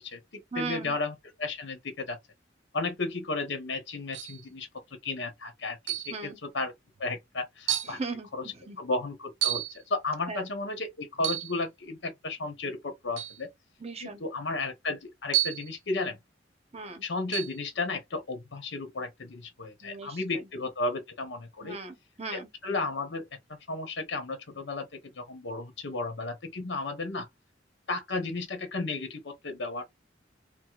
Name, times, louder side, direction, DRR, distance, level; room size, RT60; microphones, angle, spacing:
voice 1, 0.0-2.2 2.7-4.7 5.0-6.7 7.0-8.0 8.3-8.4 8.8-13.5 14.0-16.2 17.0-21.8 22.3-23.3 23.7-27.3 27.9-29.8, left 3 dB, 70° left, 1.0 m, -34 dB
voice 2, 0.5-1.0 6.1-6.4 7.8-8.8 10.3-10.5 13.8-14.2 16.7-17.0 19.8-20.5 21.6-22.5, right 4 dB, 35° right, 0.8 m, -38 dB
sound 1, 4.1-4.4 5.9-6.2 7.0-7.1 7.7-8.0 9.4-9.8 11.2-11.6 13.2-13.4 15.3-15.7 17.3-17.6, right 14 dB, 75° right, 0.6 m, -30 dB
4.7 x 2.1 x 2.4 m
head